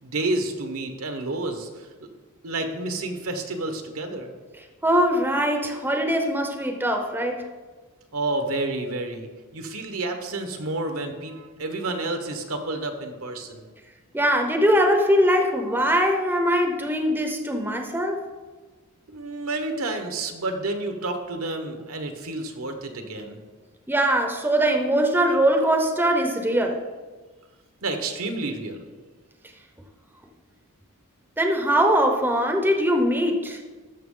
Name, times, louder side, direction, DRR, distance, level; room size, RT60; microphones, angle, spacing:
voice 1, 0.0-1.9 2.4-4.3 8.1-13.7 19.1-23.4 27.8-28.9, right 2 dB, 70° right, 5 dB, 1.1 m, -30 dB
voice 2, 4.8-7.4 14.1-18.2 23.9-26.8 31.4-33.6, equal, 10° right, 3 dB, 0.8 m, -21 dB
12.5 x 6.1 x 3.8 m, 1.3 s
head